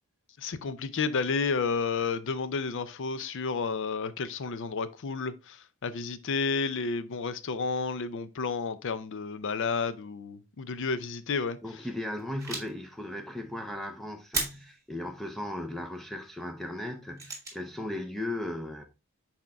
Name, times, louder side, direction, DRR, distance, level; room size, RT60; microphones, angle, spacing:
voice 1, 0.4-11.6, left 4 dB, 55° left, 0.5 m, -31 dB
voice 2, 11.6-18.8, left 1 dB, ahead, 0.5 m, -37 dB
sound 1, 12.1-12.7 14.3-14.8 17.2-17.6, right 3 dB, 15° right, 1.9 m, -34 dB
6.3 x 4.3 x 3.4 m
head